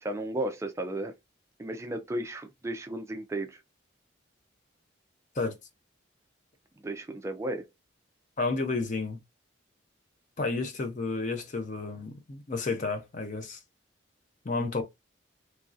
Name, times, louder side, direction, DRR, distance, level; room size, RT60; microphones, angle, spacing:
voice 1, 0.0-1.1 1.6-3.6 6.8-7.7, right 1 dB, 15° right, 0.3 m, -34 dB
voice 2, 8.4-9.2 10.4-13.6 14.4-14.8, left 3 dB, 40° left, 0.5 m, -31 dB
3.1 x 2.5 x 2.5 m
head